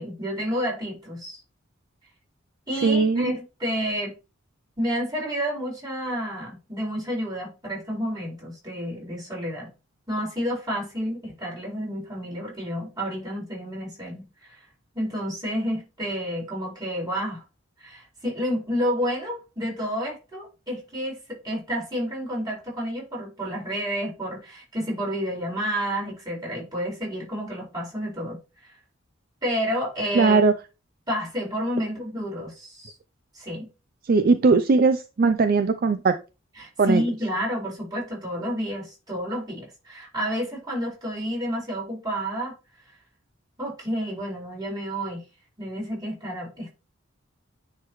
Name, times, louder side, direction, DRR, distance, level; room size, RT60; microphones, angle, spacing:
voice 1, 0.0-1.4 2.7-4.1 4.8-9.7 10.1-14.6 14.9-17.4 17.8-28.4 29.4-30.4 31.1-32.9 33.3-33.7 36.6-42.5 43.6-45.2 45.6-46.7, equal, 20° right, 4.2 m, -30 dB
voice 2, 2.8-3.3 30.1-30.5 34.1-36.1 36.8-37.0, right 4 dB, 50° right, 0.4 m, -19 dB
9.8 x 3.8 x 3.1 m
head